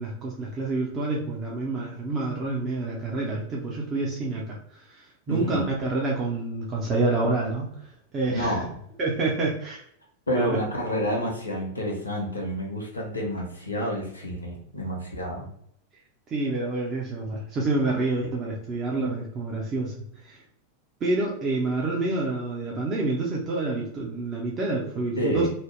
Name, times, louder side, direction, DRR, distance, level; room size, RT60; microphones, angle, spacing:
voice 1, 0.0-7.7 8.1-8.6 9.0-9.8 10.3-10.6 16.3-20.0 20.2-20.4 21.0-25.5, right 2 dB, 25° right, -3 dB, 0.5 m, -28 dB
voice 2, 5.3-5.7 8.3-8.8 10.3-15.5 25.2-25.5, equal, 80° left, -1 dB, 0.6 m, -29 dB
2.7 x 2.0 x 3.1 m, 0.69 s
figure-of-eight pair, 90°, 0 cm